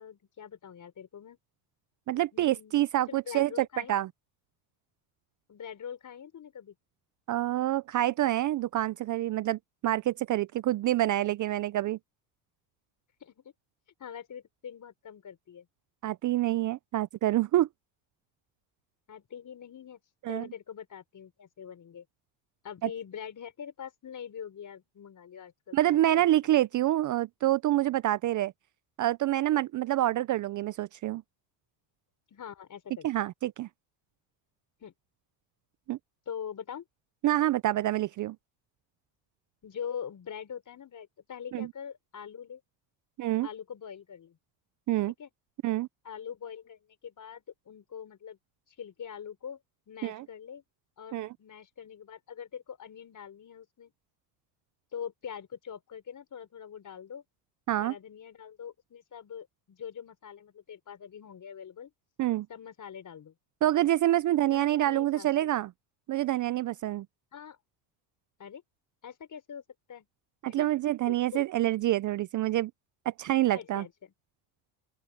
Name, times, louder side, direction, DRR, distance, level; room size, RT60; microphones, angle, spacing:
voice 1, 0.0-1.4 2.1-3.9 5.5-6.7 13.2-13.5 14.0-15.7 19.1-20.0 20.3-22.0 22.6-26.3 32.3-33.1 34.8-34.9 36.3-36.8 39.6-42.6 43.4-44.4 45.2-45.3 46.0-48.4 48.7-49.6 49.9-50.6 51.0-53.9 54.9-57.2 57.8-61.9 62.5-63.3 64.4-65.5 67.3-67.6 68.4-68.6 69.0-69.6 69.9-70.1 70.5-70.7 71.1-71.4 73.5-74.1, left 8 dB, 40° left, 4.8 m, -43 dB
voice 2, 2.1-4.1 7.3-12.0 16.0-17.7 20.2-20.5 22.8-22.9 25.7-28.5 29.0-31.2 33.0-33.7 35.9-36.0 37.2-38.4 41.5-41.7 43.2-43.5 44.9-45.1 45.6-45.9 50.0-50.2 51.1-51.3 57.7-57.9 62.2-62.5 63.6-65.7 66.1-67.1 70.4-72.7 73.1-73.8, right 14 dB, 40° right, 0.5 m, -27 dB
open air
supercardioid pair, 95°, 47 cm